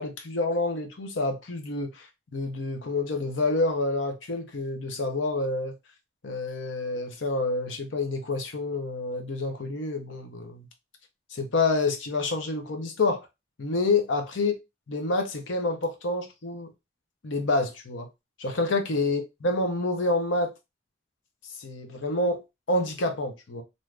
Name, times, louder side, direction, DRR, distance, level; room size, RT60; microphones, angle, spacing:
voice 1, 0.0-2.1 2.3-5.7 6.2-10.7 11.3-13.3 13.6-14.5 14.9-16.7 17.2-18.1 18.4-20.5 21.6-22.4 22.7-23.6, left 2 dB, 85° left, 0.7 m, -28 dB
2.7 x 2.4 x 3.3 m
head